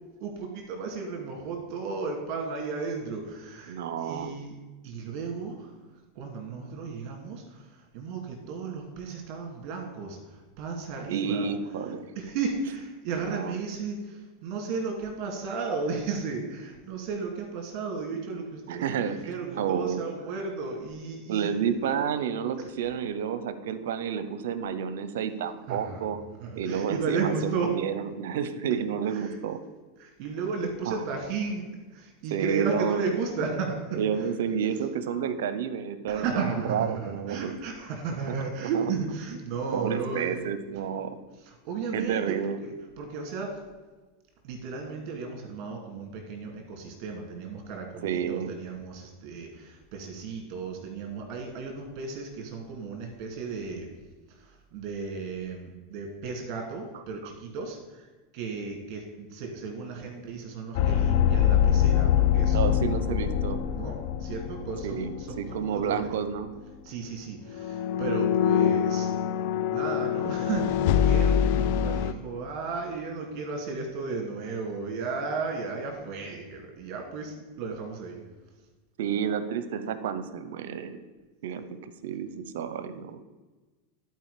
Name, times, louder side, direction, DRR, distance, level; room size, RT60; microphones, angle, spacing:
voice 1, 0.2-4.6 4.8-5.8 6.1-11.5 12.1-21.5 22.6-22.7 25.7-26.1 26.4-27.8 29.1-29.4 30.0-34.3 36.1-40.8 41.4-43.6 44.4-53.9 54.3-63.3 63.7-66.2 66.8-69.1 69.7-78.2, right 4 dB, 50° right, 2 dB, 2.4 m, -34 dB
voice 2, 3.7-4.3 11.1-12.1 13.2-13.6 18.7-19.2 19.6-20.0 21.3-26.2 26.6-29.6 30.9-31.1 32.3-33.0 33.9-37.5 38.7-38.8 39.7-41.2 41.9-42.6 48.0-48.5 62.5-63.6 64.8-66.5 79.0-81.0 81.4-83.2, right 7 dB, 80° right, 12 dB, 0.7 m, -30 dB
sound 1, 60.7-65.6 65.9-66.1 67.5-72.1, left 9 dB, 60° left, 0.4 m, -24 dB
11.0 x 4.7 x 5.0 m, 1.2 s
supercardioid pair, 120°, 0 cm